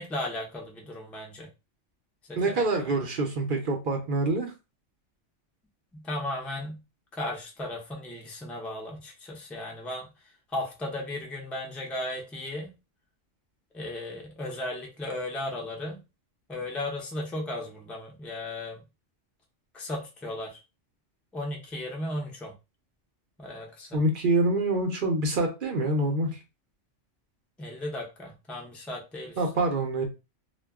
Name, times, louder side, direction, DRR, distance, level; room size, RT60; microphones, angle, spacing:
voice 1, 0.0-1.5 2.3-3.3 5.9-6.8 7.1-10.1 10.5-12.7 13.7-16.0 16.5-18.8 19.7-20.6 21.3-22.5 23.4-24.0 27.6-29.5, left 1 dB, ahead, 0 dB, 0.3 m, -36 dB
voice 2, 2.4-4.5 23.9-26.4 29.4-30.0, right 2 dB, 50° right, 3 dB, 0.7 m, -26 dB
2.2 x 2.2 x 3.4 m, 0.28 s
omnidirectional pair, 1.3 m